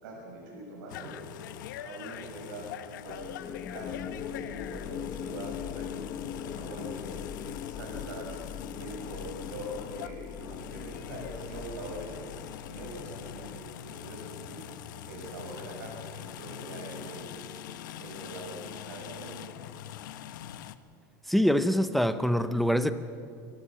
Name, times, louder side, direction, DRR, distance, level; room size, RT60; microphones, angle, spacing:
voice 1, 0.0-1.2 1.8-2.7 3.0-3.2 3.7-6.2 6.4-7.0 7.7-8.4 8.7-12.2 12.7-14.6 15.1-17.4 18.0-19.5, right 1 dB, 90° right, -1 dB, 6.4 m, -43 dB
sound 1, 0.9-20.8, left 11 dB, 85° left, 0.9 m, -43 dB
sound 2, 3.0-13.5, left 8 dB, 30° left, 0.9 m, -41 dB
voice 2, 21.3-22.9, equal, ahead, 11 dB, 0.6 m, -24 dB
26.5 x 15.0 x 7.3 m, 2.4 s
supercardioid pair, 160°, 10 cm